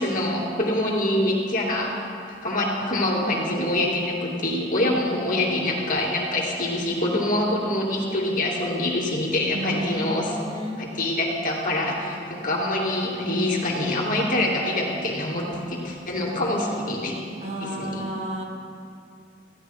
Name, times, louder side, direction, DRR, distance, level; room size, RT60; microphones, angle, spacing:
voice 1, 0.0-2.1 2.4-10.4 10.8-17.2 17.6-18.0, left 1 dB, 50° left, -2 dB, 2.7 m, -25 dB
voice 2, 9.5-10.8 17.4-18.4, right 1 dB, 40° right, 1 dB, 1.8 m, -32 dB
25.0 x 16.0 x 2.2 m, 2.4 s
head